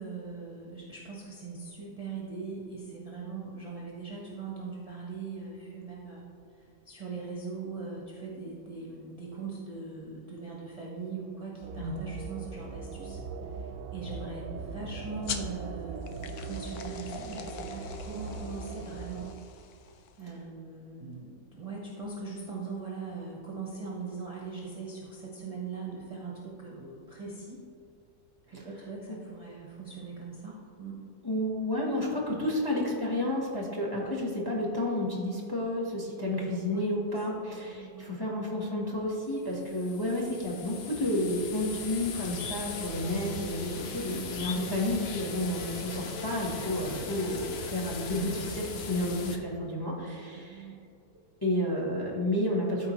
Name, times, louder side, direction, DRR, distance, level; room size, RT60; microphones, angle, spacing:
voice 1, 0.0-6.3 6.5-19.3 19.7-27.6 28.5-31.1 36.7-38.1 43.9-44.2 49.7-50.1 50.3-50.8, right 4 dB, 25° right, -4 dB, 0.9 m, -41 dB
sound 1, 11.6-19.3, right 4 dB, 70° right, 1.0 m, -40 dB
sound 2, 15.2-20.3, left 8 dB, 80° left, 1.1 m, -43 dB
voice 2, 31.2-50.7 51.4-52.9, left 1 dB, 15° left, -2 dB, 1.1 m, -31 dB
sound 3, 39.3-49.4, left 5 dB, 55° left, 0.7 m, -39 dB
13.5 x 4.6 x 3.1 m, 2.5 s
omnidirectional pair, 1.6 m